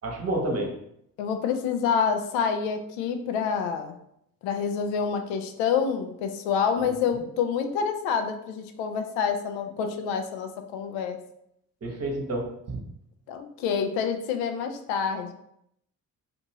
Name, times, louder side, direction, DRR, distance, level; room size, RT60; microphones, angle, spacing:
voice 1, 0.0-0.8 11.8-12.8, right 1 dB, 30° right, 0 dB, 1.0 m, -29 dB
voice 2, 1.2-4.0 4.4-11.2 13.3-15.3, left 6 dB, 65° left, 7 dB, 0.6 m, -27 dB
2.6 x 2.5 x 2.9 m, 0.73 s
hypercardioid pair, 45°, 49 cm